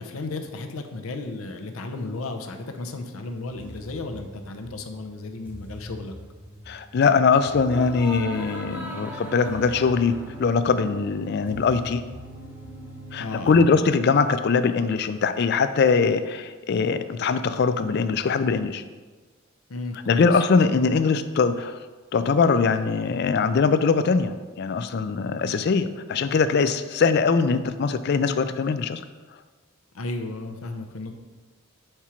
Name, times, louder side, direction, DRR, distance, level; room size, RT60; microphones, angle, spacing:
voice 1, 0.0-6.1 13.2-13.8 19.7-20.4 29.9-31.1, left 3 dB, 80° left, 5 dB, 0.7 m, -34 dB
sound 1, 3.5-13.6, equal, 10° right, 0.7 m, -39 dB
voice 2, 6.7-12.0 13.1-18.8 20.1-21.8 22.1-29.0, left 5 dB, 50° left, 11 dB, 0.3 m, -22 dB
4.9 x 4.4 x 5.7 m, 1.3 s
head